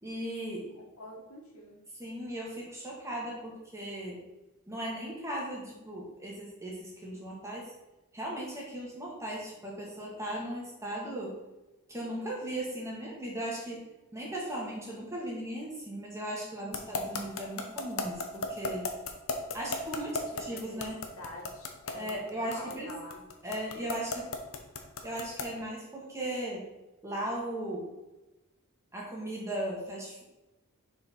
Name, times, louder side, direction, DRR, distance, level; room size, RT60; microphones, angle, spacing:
voice 1, 0.0-0.7 2.0-4.2 4.7-7.7 8.1-11.4 11.9-13.8 14.1-18.9 19.5-21.0 21.9-23.0 23.4-24.2 25.0-26.7 27.0-27.9 28.9-30.2, right 1 dB, 15° right, -3 dB, 1.8 m, -37 dB
voice 2, 0.8-1.8 16.9-17.3 20.3-23.2, left 1 dB, 90° left, -1 dB, 1.7 m, -47 dB
sound 1, 16.7-25.6, left 4 dB, 75° left, 0.9 m, -34 dB
6.7 x 4.4 x 4.5 m, 1.0 s
head